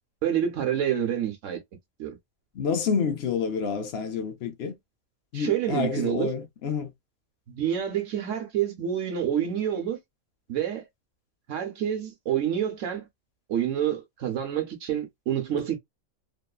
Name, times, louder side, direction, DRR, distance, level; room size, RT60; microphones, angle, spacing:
voice 1, 0.2-1.6 2.0-2.2 5.3-6.3 7.5-10.0 10.5-10.8 11.5-13.1 13.5-15.8, right 9 dB, 70° right, 1.1 m, -28 dB
voice 2, 2.5-4.8 5.3-6.9, left 6 dB, 60° left, 0.7 m, -28 dB
3.0 x 2.1 x 2.3 m
omnidirectional pair, 1.4 m